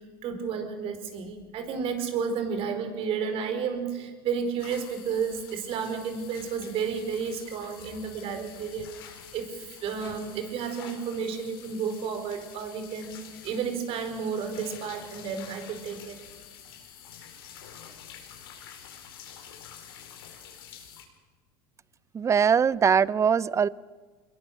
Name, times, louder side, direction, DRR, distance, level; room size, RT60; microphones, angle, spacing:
voice 1, 0.2-8.9 9.3-16.2, right 6 dB, 50° right, 7 dB, 4.6 m, -32 dB
sound 1, 4.6-21.0, left 8 dB, 80° left, 4.9 m, -48 dB
voice 2, 22.1-23.7, right 7 dB, 25° right, 21 dB, 0.6 m, -22 dB
25.5 x 21.5 x 6.7 m, 1.4 s
hypercardioid pair, 95°, 12 cm